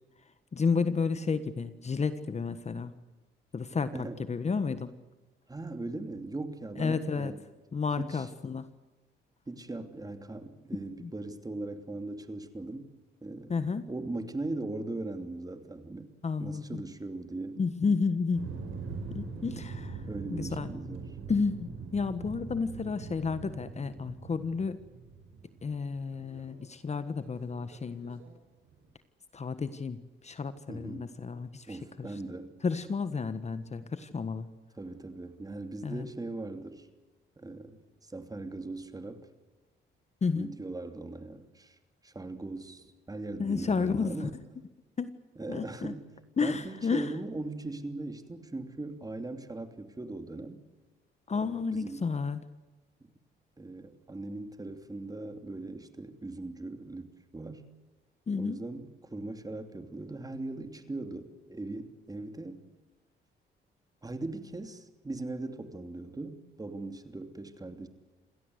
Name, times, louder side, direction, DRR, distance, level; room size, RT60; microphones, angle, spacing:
voice 1, 0.5-2.9 3.5-4.9 6.8-7.3 7.7-8.7 11.0-11.1 13.5-13.9 16.2-16.8 17.6-18.5 19.1-20.0 20.3-20.7 21.3-24.8 25.6-28.2 29.3-32.1 32.6-34.5 35.8-36.1 40.2-40.5 43.4-44.3 45.0-45.1 45.5-45.9 46.4-47.1 51.3-52.4 58.3-58.6, left 5 dB, 35° left, 12 dB, 1.4 m, -31 dB
voice 2, 5.5-7.4 8.0-8.3 9.5-12.9 13.2-13.6 13.9-16.1 16.4-17.6 20.1-21.2 30.7-31.1 31.7-32.6 34.8-36.9 37.4-39.3 40.3-41.8 42.0-44.4 45.4-50.6 51.3-52.1 53.0-53.1 53.6-57.7 58.4-62.7 64.0-67.9, right 2 dB, 20° right, 8 dB, 2.9 m, -39 dB
sound 1, 18.3-26.7 27.1-28.3 28.7-28.9, right 4 dB, 80° right, 6.2 m, -42 dB
28.0 x 17.0 x 8.0 m, 1.2 s
cardioid pair, 90°, 20 cm